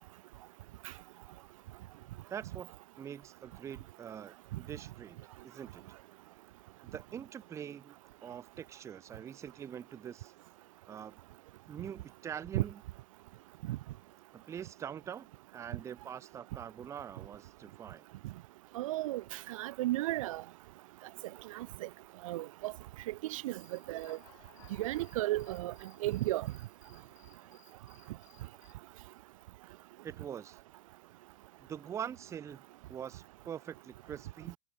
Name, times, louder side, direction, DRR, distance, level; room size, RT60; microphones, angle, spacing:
voice 1, 2.3-2.7 3.0-5.2 5.4-5.8 6.8-8.0 8.2-10.3 10.9-11.2 11.7-12.8 14.3-18.1 30.0-30.6 31.6-34.6, right 8 dB, 15° right, 0.3 m, -44 dB
voice 2, 18.7-20.4 21.5-21.9 22.2-22.7 23.1-24.2 24.8-25.7 26.0-26.5, right 16 dB, 80° right, 0.4 m, -34 dB
Human voice / Cricket, 23.6-28.7, left 16 dB, 75° left, 7.9 m, -62 dB
supercardioid pair, 120°, 17 cm